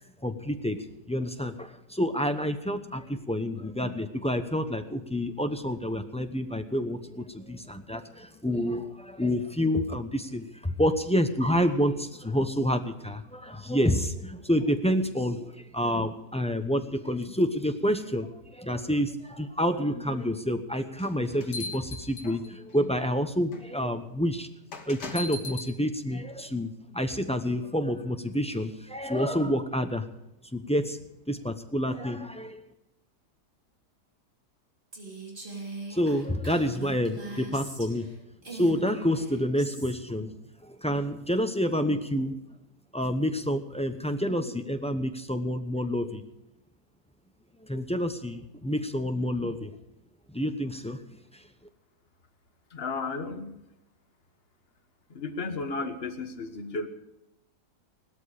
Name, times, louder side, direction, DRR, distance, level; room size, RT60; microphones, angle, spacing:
voice 1, 0.2-0.8 1.1-24.5 24.9-30.0 30.5-31.0 31.3-32.6 35.9-38.1 38.5-40.3 40.6-42.4 42.9-46.2 47.7-49.7 50.3-51.0, equal, 5° left, 7 dB, 0.4 m, -28 dB
sound 1, 21.0-22.7 23.5-23.7 24.7-25.7, left 3 dB, 85° left, 2.0 m, -38 dB
Female speech woman speaking, 34.9-38.1 38.4-40.0, right 2 dB, 30° right, 3.3 m, -41 dB
voice 2, 52.7-53.6 55.1-56.9, left 3 dB, 40° left, 6 dB, 1.5 m, -33 dB
17.5 x 13.0 x 4.9 m, 0.87 s
omnidirectional pair, 1.7 m